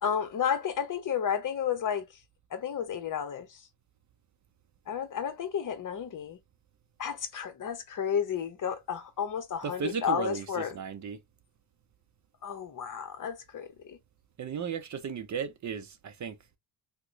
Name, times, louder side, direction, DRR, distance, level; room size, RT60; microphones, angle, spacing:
voice 1, 0.0-2.0 2.5-3.5 4.9-6.4 7.0-10.7 12.4-14.0, left 8 dB, 45° left, 0.9 m, -32 dB
voice 2, 9.6-11.2 14.4-16.4, right 6 dB, 40° right, 0.6 m, -35 dB
2.9 x 2.2 x 3.8 m
cardioid pair, 100°, 43 cm